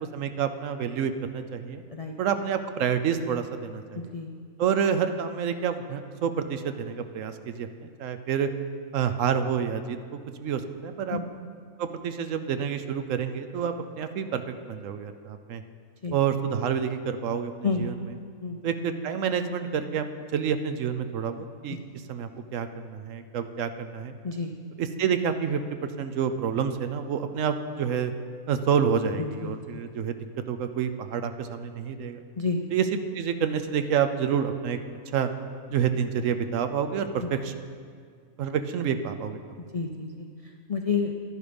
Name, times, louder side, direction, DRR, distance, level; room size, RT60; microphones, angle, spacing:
voice 1, 0.1-1.8 2.2-4.1 4.6-8.5 8.9-11.2 11.8-15.6 16.1-17.9 18.6-20.1 20.3-21.8 22.1-24.2 24.8-28.1 28.5-30.2 30.5-32.2 32.7-32.9 33.1-34.8 35.1-35.3 35.7-37.5 38.4-39.4, right 7 dB, 70° right, 8 dB, 1.0 m, -28 dB
voice 2, 3.9-4.3 11.1-11.2 16.0-16.2 17.6-17.9 18.4-18.6 21.7-21.8 24.2-24.5 29.2-29.6 32.4-32.6 37.2-37.3 39.7-41.1, left 4 dB, 55° left, 3 dB, 0.4 m, -30 dB
11.0 x 10.5 x 5.1 m, 2.1 s
omnidirectional pair, 1.5 m